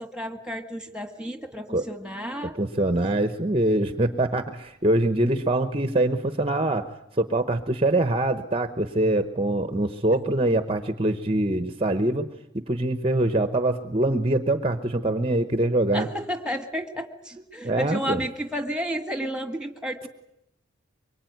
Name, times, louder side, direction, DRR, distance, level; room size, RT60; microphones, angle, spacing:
voice 1, 0.0-2.6 5.2-5.3 15.9-20.1, equal, 5° right, 7 dB, 1.8 m, -32 dB
voice 2, 2.5-12.3 12.5-16.1 17.6-18.2, right 1 dB, 25° right, 9 dB, 0.9 m, -24 dB
24.0 x 23.5 x 9.3 m, 0.82 s
head